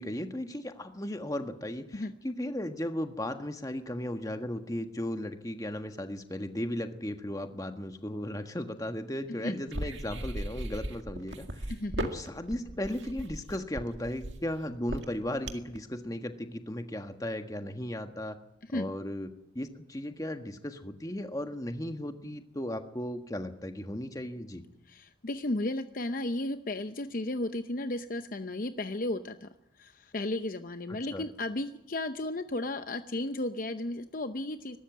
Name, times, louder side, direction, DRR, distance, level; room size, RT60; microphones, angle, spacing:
voice 1, 0.0-11.7 12.1-18.4 18.7-19.3 19.5-24.6 31.1-31.2, left 1 dB, 20° left, 7 dB, 1.5 m, -36 dB
sound 1, 9.7-15.8, right 1 dB, 80° right, 2.0 m, -37 dB
voice 2, 11.7-12.1 18.7-18.9 24.9-29.5 29.8-34.8, left 1 dB, 50° left, 9 dB, 0.8 m, -34 dB
22.5 x 13.0 x 9.4 m, 0.86 s
head